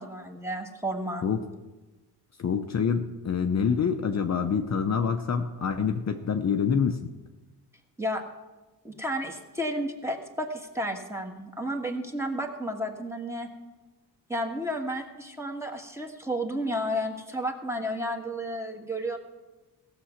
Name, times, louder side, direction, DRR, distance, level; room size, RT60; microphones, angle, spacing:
voice 1, 0.0-1.3 8.0-8.2 8.8-13.5 14.3-19.2, equal, 5° right, 3 dB, 1.5 m, -32 dB
voice 2, 2.4-7.0, left 6 dB, 40° left, 5 dB, 0.7 m, -26 dB
15.5 x 6.9 x 5.8 m, 1.2 s
cardioid pair, 90°, 41 cm